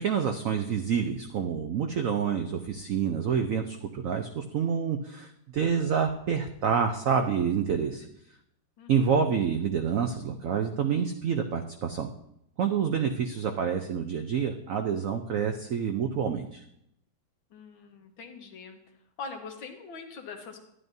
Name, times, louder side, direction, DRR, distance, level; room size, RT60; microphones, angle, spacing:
voice 1, 0.0-8.1 8.9-12.1 12.6-16.6, right 7 dB, 80° right, 6 dB, 0.7 m, -28 dB
voice 2, 8.8-9.3 12.9-13.5 17.5-18.8 19.2-20.6, left 4 dB, 85° left, 4 dB, 1.8 m, -43 dB
11.0 x 10.5 x 2.7 m, 0.79 s
omnidirectional pair, 2.1 m